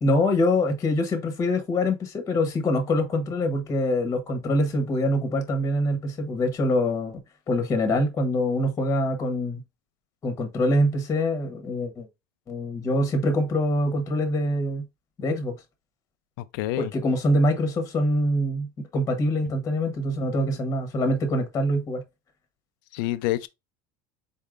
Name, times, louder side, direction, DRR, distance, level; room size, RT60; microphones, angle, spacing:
voice 1, 0.0-7.2 7.5-9.6 10.2-12.1 12.5-14.8 15.2-15.5 16.8-22.0, left 1 dB, 25° left, 1.0 m, -24 dB
voice 2, 16.4-16.9 22.9-23.5, left 16 dB, 75° left, 0.4 m, -28 dB
4.1 x 3.6 x 2.4 m
supercardioid pair, 135°, 11 cm